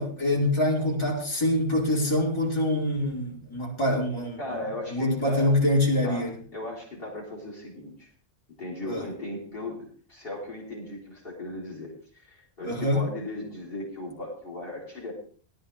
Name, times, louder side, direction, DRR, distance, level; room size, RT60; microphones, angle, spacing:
voice 1, 0.0-4.4 4.9-6.4 8.8-9.0 12.6-13.0, left 1 dB, 25° left, -4 dB, 4.2 m, -25 dB
voice 2, 4.4-5.5 6.0-8.1 8.6-15.1, left 2 dB, 50° left, -2 dB, 4.3 m, -37 dB
18.5 x 12.0 x 3.5 m, 0.44 s
omnidirectional pair, 1.2 m